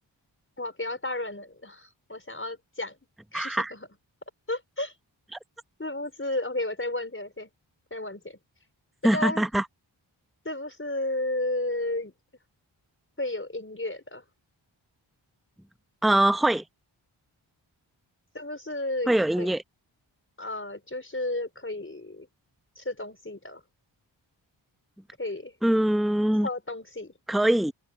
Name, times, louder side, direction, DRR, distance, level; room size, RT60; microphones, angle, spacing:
voice 1, 0.6-3.0 3.3-3.9 4.5-4.9 5.8-7.5 7.9-8.4 9.1-9.4 10.5-12.1 13.2-14.2 18.3-19.5 20.4-22.3 22.8-23.6 25.2-25.5 26.4-27.1, left 2 dB, 25° left, 5.3 m, -33 dB
voice 2, 3.3-3.7 9.0-9.6 16.0-16.6 19.1-19.6 25.6-26.5 27.3-27.7, right 1 dB, ahead, 1.0 m, -23 dB
cardioid pair, 45°, 47 cm